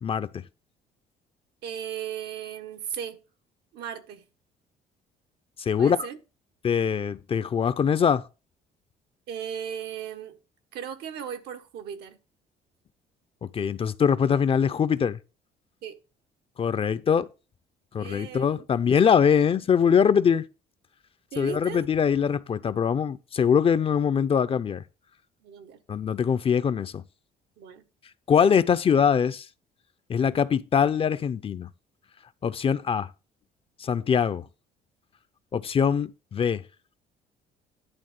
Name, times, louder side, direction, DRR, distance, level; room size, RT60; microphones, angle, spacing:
voice 1, 0.0-0.4 5.6-6.0 6.6-8.2 13.5-15.2 16.6-17.3 17.9-20.4 21.4-24.8 25.9-27.0 28.3-29.5 30.1-31.7 32.4-33.1 33.8-34.5 35.5-36.6, left 7 dB, 35° left, 0.5 m, -23 dB
voice 2, 1.6-3.2 3.7-4.2 5.8-6.2 9.3-10.4 10.7-12.2 15.8-16.0 18.0-18.7 21.3-21.8 25.4-25.8 27.6-27.8, right 8 dB, 75° right, 1.2 m, -36 dB
11.0 x 3.6 x 6.6 m
cardioid pair, 110°, 17 cm